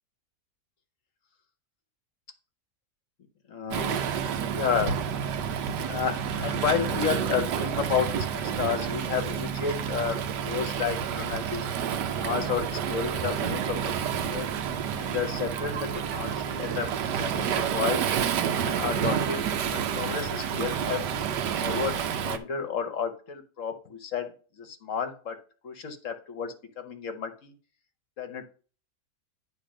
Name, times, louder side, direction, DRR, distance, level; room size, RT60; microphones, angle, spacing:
voice 1, 3.5-4.0 4.5-5.0 5.9-11.7 12.1-13.9 14.3-14.5 15.0-16.9 17.2-18.0 18.5-21.3 21.6-21.9 22.2-24.3 24.6-25.4 25.6-27.5 28.2-28.5, left 7 dB, 55° left, 6 dB, 1.3 m, -31 dB
Waves surf, 3.7-22.4, right 8 dB, 85° right, 1.4 m, -29 dB
10.0 x 3.4 x 6.2 m, 0.39 s
omnidirectional pair, 1.8 m